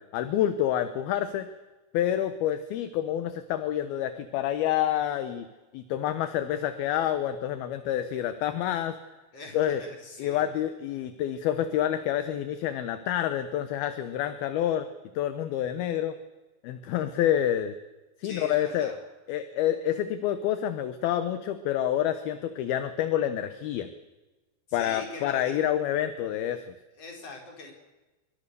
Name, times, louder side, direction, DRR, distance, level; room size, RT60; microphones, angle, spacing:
voice 1, 0.0-1.5 1.9-5.5 5.7-9.0 9.5-9.8 10.2-14.9 15.2-16.2 16.6-17.7 18.2-19.0 19.3-23.9 24.7-26.7, left 11 dB, 70° left, 10 dB, 2.6 m, -28 dB
voice 2, 9.3-10.5 18.2-19.0 24.7-25.7 26.9-27.7, left 3 dB, 35° left, 2 dB, 5.2 m, -42 dB
26.0 x 22.0 x 6.9 m, 1.1 s
omnidirectional pair, 5.2 m